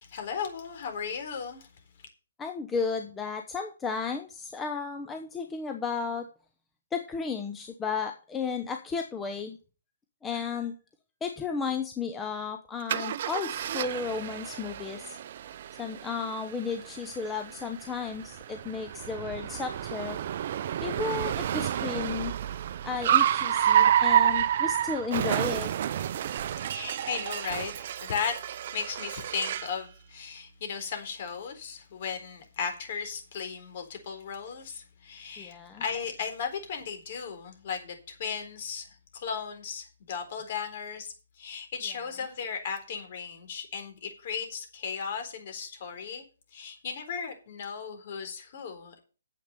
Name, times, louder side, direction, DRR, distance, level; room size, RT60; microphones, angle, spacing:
voice 1, 0.1-1.7 26.6-28.4 28.7-46.2 46.5-49.0, left 6 dB, 45° left, 5 dB, 4.0 m, -36 dB
voice 2, 2.4-6.2 6.9-9.6 10.2-10.8 11.2-15.2 15.8-20.2 20.8-22.3 22.8-25.7 35.4-35.8, left 5 dB, 10° left, 5 dB, 0.9 m, -33 dB
Car, 12.9-29.8, right 10 dB, 45° right, 0.6 m, -29 dB
9.5 x 7.8 x 6.8 m, 0.36 s
hypercardioid pair, 150°, 0 cm